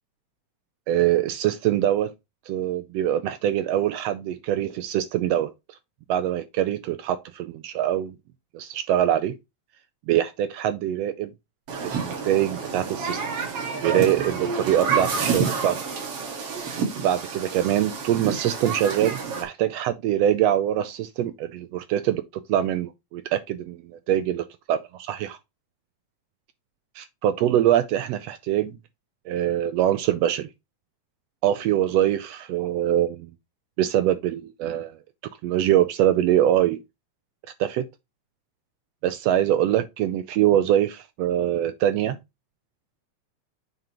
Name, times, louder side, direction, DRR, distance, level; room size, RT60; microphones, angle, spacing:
voice 1, 0.9-2.1 2.5-5.5 6.1-8.1 8.5-9.3 10.1-11.3 11.8-13.2 13.8-15.8 17.0-23.8 24.1-24.4 24.7-25.4 27.0-28.7 29.3-30.5 31.4-33.3 33.8-35.0 35.4-36.8 37.6-37.8 39.0-42.2, right 11 dB, 80° right, 1.5 m, -23 dB
Human group actions, 11.7-19.4, right 5 dB, 55° right, 2.5 m, -29 dB
7.6 x 5.3 x 2.9 m
omnidirectional pair, 3.3 m